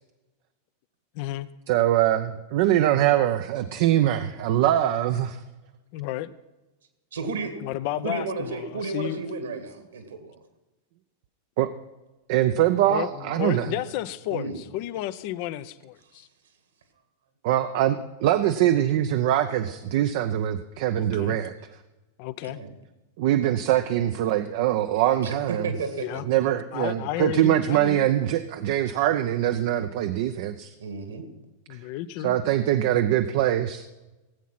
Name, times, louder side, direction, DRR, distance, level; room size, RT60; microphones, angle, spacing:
voice 1, 1.1-1.5 5.9-6.3 7.6-9.2 12.9-16.3 21.0-21.4 22.2-22.6 26.0-26.2 26.7-28.1 31.7-32.3, left 14 dB, 45° left, 14 dB, 0.5 m, -32 dB
voice 2, 1.7-5.4 11.6-11.7 12.3-13.7 17.4-21.5 23.2-25.7 26.3-30.7 32.2-33.9, right 12 dB, 50° right, 9 dB, 0.6 m, -23 dB
voice 3, 7.1-7.6 8.0-10.4 14.3-14.6 22.4-22.8 25.1-26.2 30.8-31.3, right 4 dB, 65° right, 7 dB, 1.9 m, -33 dB
17.5 x 8.3 x 5.8 m, 1.1 s
figure-of-eight pair, 90°, 0 cm